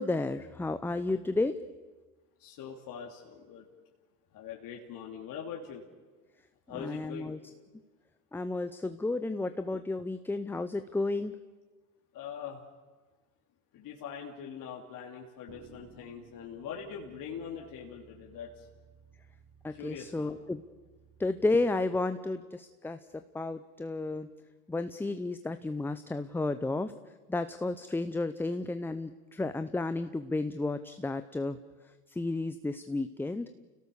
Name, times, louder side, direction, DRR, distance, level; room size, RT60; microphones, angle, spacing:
voice 1, 0.0-1.5 6.7-7.4 8.3-11.4 19.6-20.6 21.2-24.3 24.7-26.9 27.3-31.6 32.1-33.5, left 2 dB, 5° left, 10 dB, 0.6 m, -32 dB
voice 2, 2.4-3.6 4.3-5.9 6.7-7.4 12.1-12.6 13.7-18.7 19.7-20.4, left 7 dB, 45° left, -1 dB, 3.1 m, -43 dB
sound 1, 15.5-21.7, right 4 dB, 30° right, 5.2 m, -59 dB
29.5 x 17.5 x 7.0 m, 1.3 s
hypercardioid pair, 100°, 46 cm